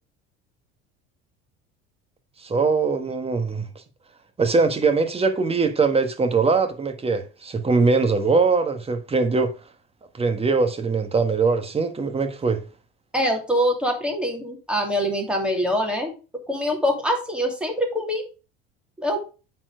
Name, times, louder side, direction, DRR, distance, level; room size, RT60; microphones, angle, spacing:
voice 1, 2.4-3.7 4.4-9.5 10.1-12.6, right 4 dB, 20° right, 1.5 m, -21 dB
voice 2, 13.1-16.1 16.5-18.2 19.0-19.2, equal, 5° right, 2.9 m, -24 dB
9.0 x 4.5 x 5.0 m
supercardioid pair, 95°, 30 cm